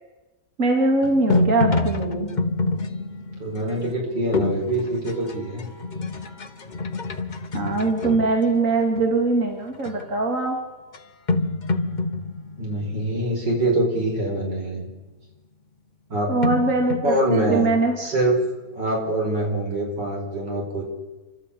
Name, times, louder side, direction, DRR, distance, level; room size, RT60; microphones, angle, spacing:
voice 1, 0.6-2.3 7.5-10.6 16.3-18.0, right 3 dB, 45° right, 2 dB, 3.0 m, -22 dB
sound 1, 1.0-9.3 9.7-10.1 10.9-11.0 11.3-13.8 16.4-18.2, left 3 dB, 35° left, 0.9 m, -27 dB
voice 2, 3.4-5.7 12.6-14.9 16.1-16.3 17.0-17.6 18.0-18.4 18.7-20.8, right 1 dB, 80° right, 0 dB, 5.9 m, -24 dB
29.5 x 13.0 x 8.6 m, 1.2 s
omnidirectional pair, 1.9 m